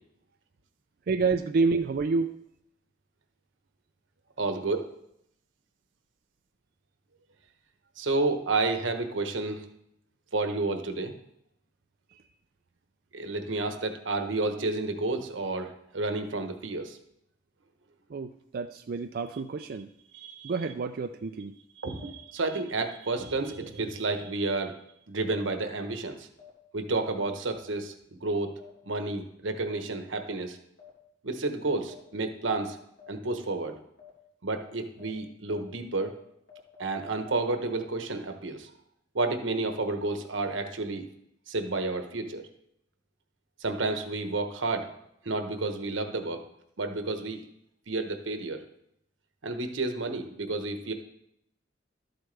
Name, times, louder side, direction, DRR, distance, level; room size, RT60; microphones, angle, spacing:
voice 1, 1.1-2.4 12.1-12.2 18.1-19.9 20.4-21.6, right 4 dB, 50° right, 7 dB, 0.4 m, -29 dB
voice 2, 4.4-4.8 8.0-9.7 10.3-11.1 13.1-17.0 20.1-20.5 21.8-24.7 25.1-26.3 26.7-27.9 28.2-28.5 28.9-30.6 31.2-32.8 33.1-33.7 34.4-36.2 36.8-38.7 39.1-41.1 41.5-42.4 43.6-44.9 45.2-46.4 46.8-47.4 47.9-48.6 49.4-50.9, right 3 dB, 90° right, 6 dB, 1.1 m, -30 dB
sound 1, 22.0-22.1 23.1-23.2 24.2-24.3 25.3-25.4 26.4-26.5 27.5-27.6 28.6-28.7 29.7-29.8 30.8-30.9 31.9-32.0 32.5-32.6 33.0-33.1 33.5-33.6 34.0-34.1 34.5-34.6 35.0-35.1 35.5-35.6 36.0-36.1 36.5-37.6, left 8 dB, 85° left, 3.2 m, -50 dB
12.5 x 7.9 x 3.4 m, 0.76 s
head